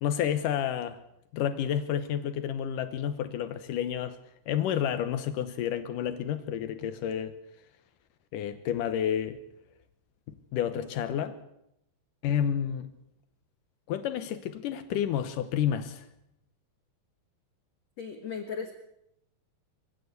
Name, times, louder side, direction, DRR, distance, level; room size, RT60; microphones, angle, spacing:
voice 1, 0.0-1.0 1.3-4.2 4.5-7.4 8.3-9.4 10.3-11.4 12.2-12.9 13.9-16.1, left 9 dB, 90° left, 1.9 m, -30 dB
voice 2, 18.0-18.7, left 6 dB, 55° left, 2.0 m, -36 dB
23.5 x 16.0 x 8.2 m
omnidirectional pair, 5.2 m